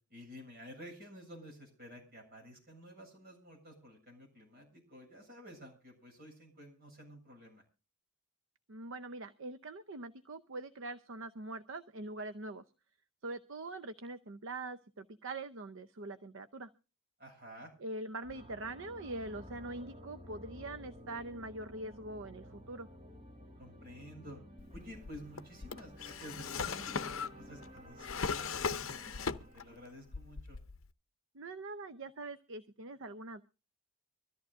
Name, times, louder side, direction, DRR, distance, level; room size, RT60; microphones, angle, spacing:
voice 1, 0.1-7.6 17.2-17.7 23.6-24.4 24.7-30.6, equal, 45° right, 0 dB, 7.3 m, -52 dB
voice 2, 8.7-12.6 13.2-16.7 17.8-22.9 31.3-33.4, right 2 dB, 60° right, 11 dB, 0.7 m, -43 dB
sound 1, 18.2-30.2, equal, 25° right, 1.7 m, -53 dB
Drawer open or close, 24.6-29.8 30.1-30.9, left 5 dB, 65° left, 0.7 m, -39 dB
24.5 x 14.0 x 2.5 m, 0.33 s
head